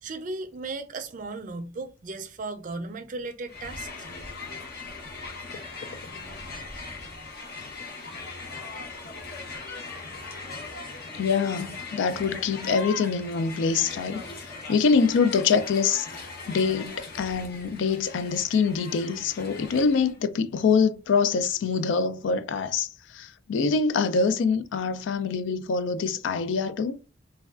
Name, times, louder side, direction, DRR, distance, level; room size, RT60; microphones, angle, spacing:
voice 1, 0.0-3.9, right 3 dB, 45° right, 0.4 m, -36 dB
Crowd, 3.5-20.2, left 3 dB, 55° left, 0.8 m, -40 dB
voice 2, 11.2-14.2 14.7-16.1 16.5-27.0, left 5 dB, 75° left, 0.3 m, -25 dB
3.3 x 2.2 x 2.3 m
head